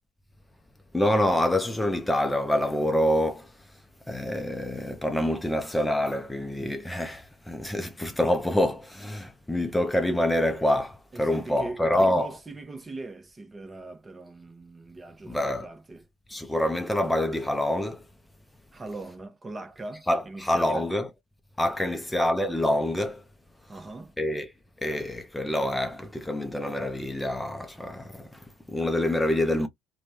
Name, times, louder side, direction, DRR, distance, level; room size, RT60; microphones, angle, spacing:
voice 1, 0.9-3.5 4.1-12.3 15.3-15.7 16.3-18.0 20.1-21.1 21.6-23.2 24.2-24.5 24.8-29.7, left 1 dB, 10° left, 0.6 m, -26 dB
voice 2, 11.1-16.0 18.7-20.9 21.8-22.0 23.7-24.1, right 2 dB, 25° right, 0.9 m, -41 dB
2.9 x 2.3 x 2.7 m
hypercardioid pair, 60°, 0 cm